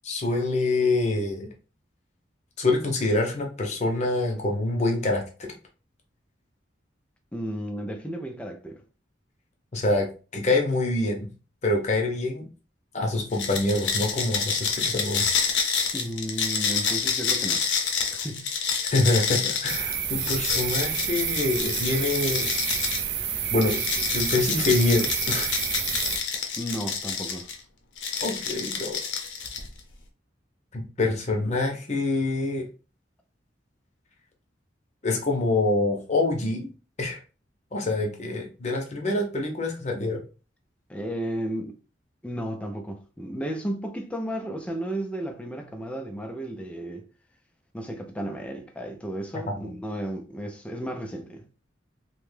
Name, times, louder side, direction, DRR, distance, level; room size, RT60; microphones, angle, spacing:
voice 1, 0.0-1.5 2.6-5.5 9.7-10.1 10.3-11.3 11.6-12.5 12.9-15.5 18.8-22.5 22.8-22.9 23.5-23.8 24.1-25.5 28.2-29.0 30.7-32.7 35.0-36.7 37.0-37.2 37.7-40.2 49.5-49.7, left 2 dB, 40° left, 0.7 m, -26 dB
voice 2, 7.3-8.8 15.9-17.6 18.1-18.5 26.6-27.5 40.9-41.8 42.2-47.0 47.7-51.4, right 1 dB, 5° left, 0.4 m, -33 dB
sound 1, 13.3-23.1 23.6-27.6 28.0-29.8, left 6 dB, 80° left, 0.6 m, -28 dB
sound 2, 19.7-26.2, right 8 dB, 65° right, 0.4 m, -29 dB
2.9 x 2.2 x 3.2 m
head